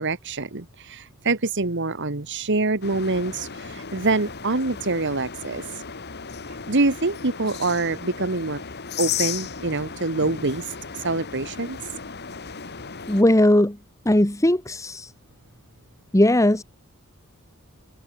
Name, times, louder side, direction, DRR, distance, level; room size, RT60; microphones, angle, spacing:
voice 1, 0.0-5.8 6.7-8.6 9.0-11.8, right 3 dB, 55° right, 1.6 m, -25 dB
sound 1, 2.8-13.2, left 7 dB, 45° left, 1.6 m, -35 dB
voice 2, 13.1-13.8 14.0-15.1 16.1-16.6, left 1 dB, 15° left, 1.4 m, -18 dB
head